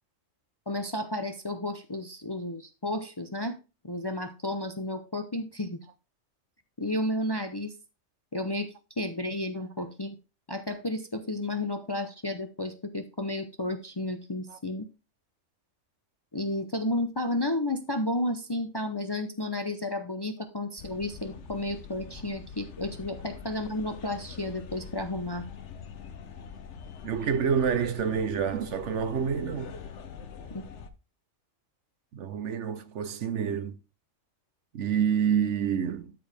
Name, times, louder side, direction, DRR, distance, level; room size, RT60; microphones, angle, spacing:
voice 1, 0.7-3.6 3.8-5.8 6.8-7.7 8.3-10.2 10.5-14.9 16.3-25.5 30.5-30.6, left 1 dB, 25° left, 0.6 m, -32 dB
sound 1, 20.8-30.9, left 6 dB, 65° left, 1.2 m, -44 dB
voice 2, 27.0-29.8 32.1-33.8 34.7-36.1, right 7 dB, 65° right, 1.1 m, -28 dB
12.5 x 4.7 x 3.5 m
omnidirectional pair, 1.3 m